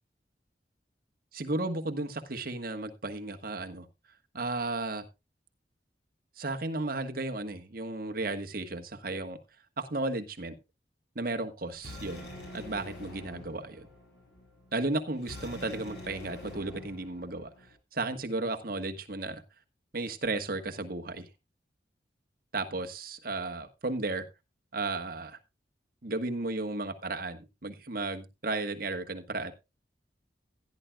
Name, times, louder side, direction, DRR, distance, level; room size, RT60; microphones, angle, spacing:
voice 1, 1.3-3.8 4.3-5.0 6.4-9.4 9.8-10.5 11.1-12.2 12.5-13.9 14.7-17.5 17.9-19.4 19.9-21.3 22.5-24.3 24.7-25.4 26.0-29.5, right 2 dB, 55° right, 6 dB, 1.5 m, -34 dB
sound 1, 11.7-17.7, left 1 dB, 75° left, 6.7 m, -46 dB
16.0 x 10.5 x 2.4 m, 0.24 s
head